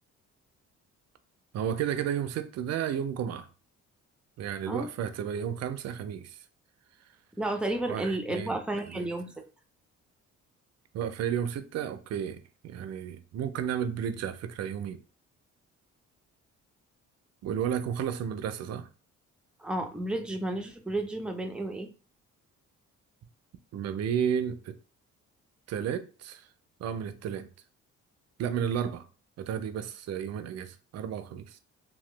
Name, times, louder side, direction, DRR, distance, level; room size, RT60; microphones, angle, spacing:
voice 1, 1.5-3.5 4.4-6.4 7.9-8.6 8.9-9.1 10.9-15.0 17.4-18.9 23.7-24.8 25.7-26.4 26.8-27.5 28.4-29.1 29.4-31.6, right 8 dB, 60° right, 0.5 m, -32 dB
voice 2, 7.4-9.3 19.6-21.9, right 1 dB, 5° right, 0.4 m, -32 dB
2.9 x 2.2 x 3.2 m
cardioid pair, 90°, 30 cm